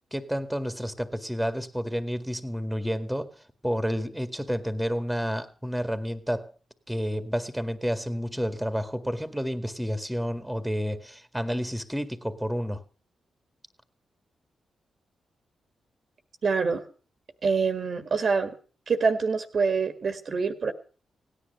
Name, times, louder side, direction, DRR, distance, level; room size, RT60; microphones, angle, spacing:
voice 1, 0.1-3.3 3.6-6.5 6.9-12.8, equal, 5° right, 1.9 m, -30 dB
voice 2, 16.4-16.8 17.4-18.5 18.9-20.7, right 5 dB, 60° right, 1.7 m, -25 dB
17.0 x 10.0 x 6.8 m
supercardioid pair, 45°, 0 cm